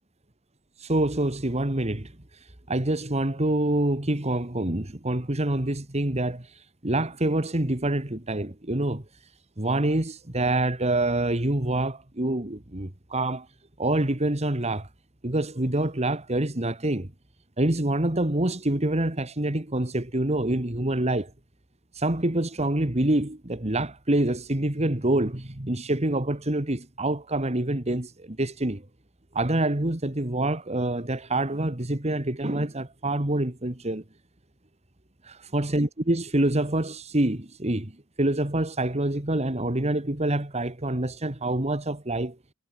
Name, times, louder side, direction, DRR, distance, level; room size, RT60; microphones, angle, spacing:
voice 1, 0.9-2.1 2.7-6.5 6.8-9.0 9.6-13.5 13.8-14.9 15.2-17.1 17.6-21.3 22.0-28.9 29.3-34.0 35.3-37.9 38.2-42.4, right 1 dB, 30° right, 2.0 m, -26 dB
head